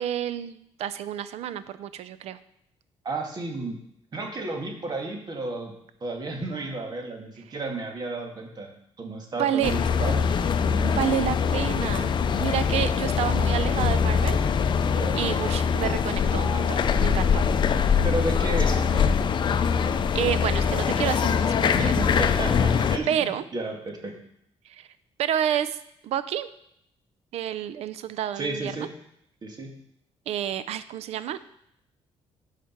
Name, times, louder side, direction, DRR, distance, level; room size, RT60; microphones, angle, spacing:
voice 1, 0.0-2.4 9.4-9.7 11.0-12.1 12.4-14.4 15.2-17.4 20.1-21.9 23.1-23.4 24.7-24.9 25.2-25.8 26.0-26.5 27.3-28.9 30.3-31.4, right 10 dB, 75° right, 13 dB, 0.6 m, -29 dB
voice 2, 3.0-3.8 4.1-5.7 6.0-8.7 9.0-10.3 10.5-11.0 14.9-15.2 18.0-19.2 21.8-24.1 28.4-28.9 29.4-29.7, right 2 dB, 40° right, 2 dB, 2.0 m, -32 dB
sound 1, 9.6-23.0, left 6 dB, 45° left, 0.6 m, -23 dB
13.0 x 5.0 x 4.5 m, 0.74 s
cardioid pair, 110°, 11 cm